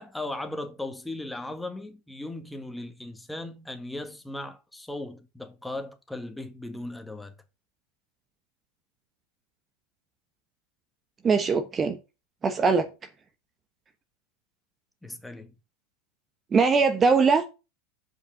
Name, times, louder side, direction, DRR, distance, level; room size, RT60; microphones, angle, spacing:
voice 1, 0.0-7.3 15.0-15.6, left 2 dB, 5° left, 1.6 m, -37 dB
voice 2, 11.2-12.0 12.4-12.9 16.5-17.6, right 5 dB, 25° right, 1.0 m, -21 dB
7.5 x 5.3 x 6.7 m
hypercardioid pair, 90°, 0 cm